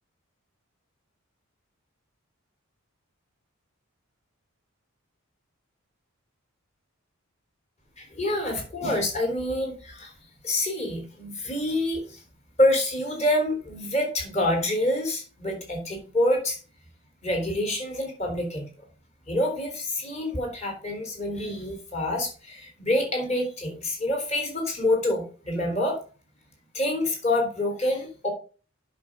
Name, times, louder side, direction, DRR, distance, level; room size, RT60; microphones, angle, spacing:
voice 1, 8.0-10.1 10.4-12.2 12.6-16.6 17.2-18.7 19.3-26.0 26.7-28.3, left 1 dB, 30° left, 3 dB, 3.5 m, -27 dB
8.6 x 6.4 x 5.9 m, 0.37 s
head